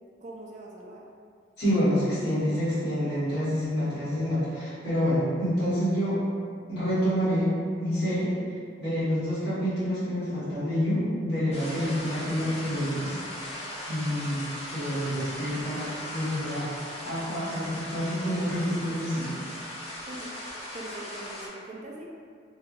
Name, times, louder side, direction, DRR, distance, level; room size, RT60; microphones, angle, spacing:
voice 1, 0.2-1.1 20.1-22.0, right 1 dB, 40° right, -2 dB, 0.4 m, -42 dB
voice 2, 1.6-6.2 6.7-8.4 8.8-13.2 13.9-16.7 17.0-19.3, equal, 60° left, -14 dB, 1.2 m, -28 dB
sound 1, 11.5-21.5, left 1 dB, 35° left, 0.5 m, -38 dB
3.0 x 2.2 x 2.6 m, 2.1 s
head